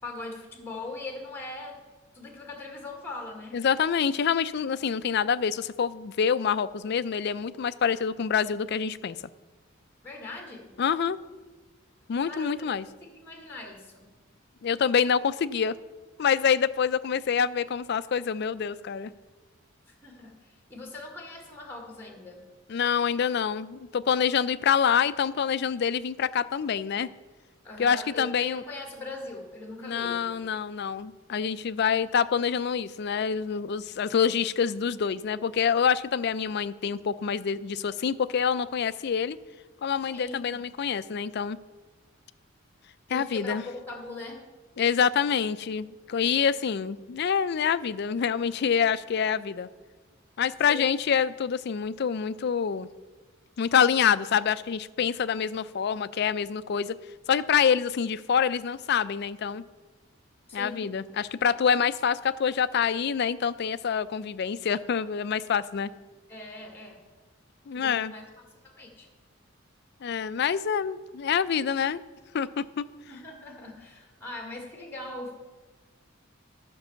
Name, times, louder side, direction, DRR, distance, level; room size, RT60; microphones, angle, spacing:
voice 1, 0.0-1.8 2.1-3.6 10.0-10.8 12.3-14.1 19.9-22.5 27.6-30.3 40.0-40.6 43.1-44.4 50.7-50.8 60.5-60.9 66.3-67.0 67.7-68.4 68.8-69.1 73.1-75.4, left 2 dB, 10° left, 0 dB, 1.6 m, -41 dB
voice 2, 3.5-9.2 10.8-11.2 12.1-12.8 14.6-15.7 16.2-19.1 22.7-27.1 27.8-28.6 29.8-39.4 39.8-41.6 43.1-43.6 44.8-49.7 50.4-52.9 53.6-57.0 57.3-59.6 60.5-65.9 67.7-68.1 70.0-72.0 72.3-72.8, left 7 dB, 55° left, 15 dB, 0.4 m, -26 dB
11.5 x 5.4 x 6.9 m, 1.3 s
head